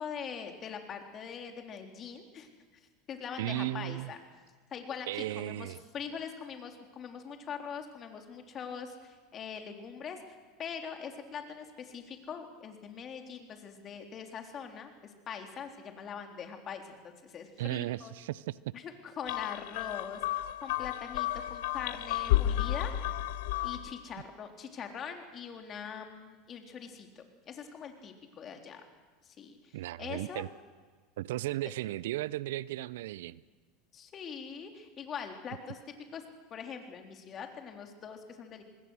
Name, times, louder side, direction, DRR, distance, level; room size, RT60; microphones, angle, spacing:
voice 1, 0.0-2.5 3.1-4.2 4.7-10.2 10.6-18.1 18.7-22.9 23.6-28.8 29.2-30.4 33.9-35.8 36.1-36.2 36.5-38.6, left 7 dB, 40° left, 4 dB, 3.7 m, -42 dB
voice 2, 3.4-4.1 5.1-5.8 17.6-18.6 29.7-30.5 31.2-33.4, right 15 dB, 70° right, 20 dB, 0.6 m, -35 dB
sound 1, 19.3-24.0, left 14 dB, 70° left, 0.7 m, -32 dB
25.5 x 20.5 x 6.5 m, 1.5 s
hypercardioid pair, 85°, 0 cm